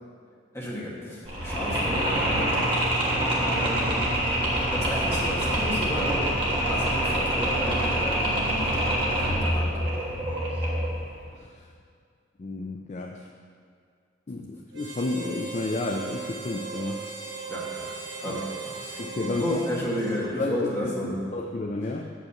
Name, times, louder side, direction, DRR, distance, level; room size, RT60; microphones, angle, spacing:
voice 1, 0.5-2.6 3.4-4.2 4.6-8.6 9.0-9.9 17.5-17.9 18.2-18.5 18.8-19.0 19.4-21.3, left 1 dB, 15° left, -6 dB, 1.6 m, -32 dB
Mechanisms, 1.2-11.0, right 1 dB, 25° right, 1.5 m, -25 dB
voice 2, 12.4-13.3 14.3-17.0 18.3-18.4 19.0-19.6 20.4-22.1, left 2 dB, 35° left, 3 dB, 0.3 m, -31 dB
Harmonica, 14.7-20.7, right 5 dB, 65° right, 1.1 m, -38 dB
7.6 x 5.4 x 7.0 m, 2.2 s
head